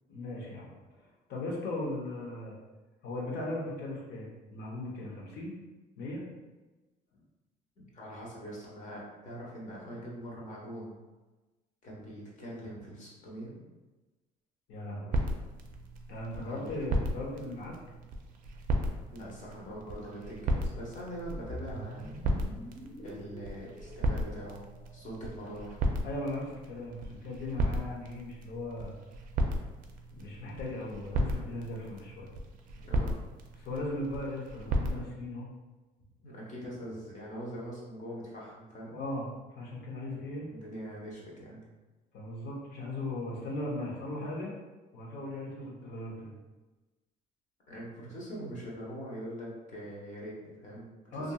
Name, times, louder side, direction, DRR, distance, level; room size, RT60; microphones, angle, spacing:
voice 1, 0.1-2.6 3.0-5.5 6.0-6.2 14.7-15.2 16.1-17.8 26.0-28.9 30.1-32.3 32.7-32.9 33.5-35.5 38.9-40.5 42.1-44.5 44.9-46.3 51.1-51.3, left 1 dB, 70° left, -3 dB, 0.8 m, -38 dB
voice 2, 7.8-10.9 11.8-13.5 16.4-16.8 19.1-22.1 23.0-24.6 24.9-25.8 32.8-33.2 36.2-39.0 40.5-41.6 47.7-51.3, equal, 45° left, -4 dB, 1.0 m, -43 dB
sound 1, 15.1-35.0, right 1 dB, 55° right, 0.4 m, -35 dB
sound 2, 21.2-25.4, equal, 15° left, 0.6 m, -45 dB
2.7 x 2.5 x 2.3 m, 1.2 s
cardioid pair, 110°, 17 cm